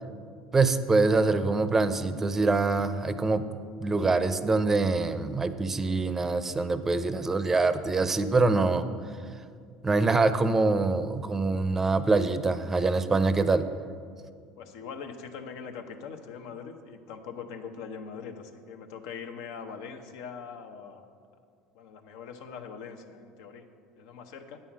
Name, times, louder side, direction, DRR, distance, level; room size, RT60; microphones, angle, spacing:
voice 1, 0.5-3.5 3.8-8.8 9.8-13.7, right 3 dB, 15° right, 11 dB, 0.5 m, -24 dB
voice 2, 14.6-21.1 21.7-23.7 24.0-24.6, left 6 dB, 85° left, 6 dB, 0.8 m, -42 dB
9.0 x 5.6 x 7.3 m, 2.2 s
supercardioid pair, 120°, 2 cm